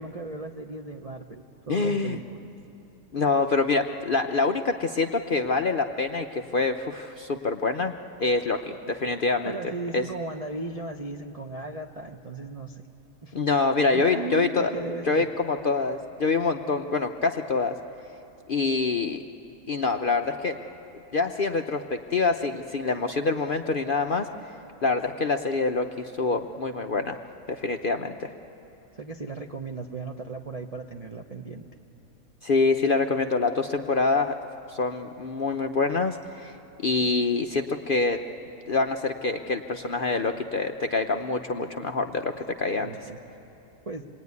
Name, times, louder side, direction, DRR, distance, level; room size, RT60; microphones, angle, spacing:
voice 1, 0.0-2.5 9.4-12.8 13.2-13.3 13.9-15.3 29.0-31.7 42.8-43.2 43.8-44.0, right 3 dB, 35° right, 1 dB, 0.7 m, -36 dB
voice 2, 1.7-2.2 3.1-7.9 8.2-9.6 9.9-10.0 13.3-14.7 15.1-17.7 18.5-19.2 19.7-20.6 21.1-24.3 24.8-27.2 27.5-28.3 32.4-34.4 34.7-38.2 38.7-42.9, left 3 dB, 55° left, 5 dB, 0.6 m, -26 dB
26.5 x 20.5 x 9.5 m, 3.0 s
omnidirectional pair, 1.7 m